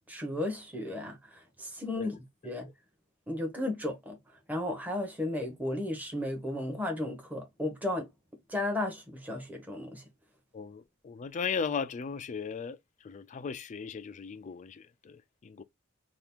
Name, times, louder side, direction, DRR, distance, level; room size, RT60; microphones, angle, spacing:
voice 1, 0.1-2.2 2.4-2.7 3.3-8.1 8.5-10.1, left 1 dB, 10° right, 0.9 m, -34 dB
voice 2, 10.5-15.6, left 6 dB, 35° left, 0.3 m, -37 dB
2.9 x 2.4 x 3.4 m
head